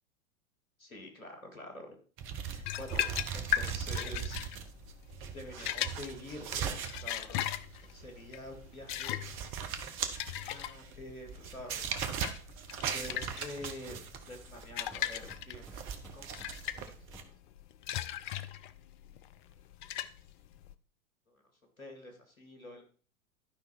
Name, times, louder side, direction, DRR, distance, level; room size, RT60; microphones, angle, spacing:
voice 1, 0.8-2.0 2.5-3.0 3.3-4.4 5.3-7.5 7.8-9.3 10.0-11.9 12.8-14.0 14.3-17.3 17.9-18.5 21.8-22.8, left 1 dB, 80° left, 4 dB, 2.4 m, -47 dB
sound 1, 2.2-17.2, right 7 dB, 30° right, 1.0 m, -40 dB
sound 2, 2.6-20.7, left 12 dB, 35° left, 0.5 m, -38 dB
Hammer, 13.2-14.5 14.9-17.5, right 2 dB, ahead, 3.0 m, -56 dB
11.5 x 5.4 x 4.2 m, 0.40 s
figure-of-eight pair, 95°, 41 cm